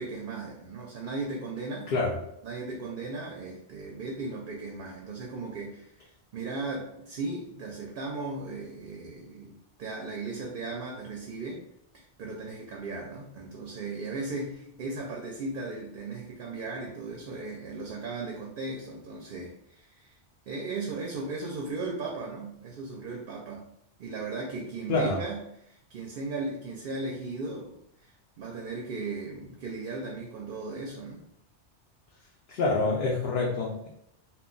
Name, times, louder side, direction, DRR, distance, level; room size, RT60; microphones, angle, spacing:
voice 1, 0.0-1.9 2.4-11.6 11.9-20.2 20.5-23.7 24.0-31.2, right 3 dB, 60° right, 0 dB, 0.6 m, -37 dB
voice 2, 1.9-2.2 24.9-25.2 32.5-33.9, left 3 dB, 60° left, -3 dB, 0.7 m, -27 dB
2.3 x 2.2 x 3.7 m, 0.76 s
omnidirectional pair, 1.2 m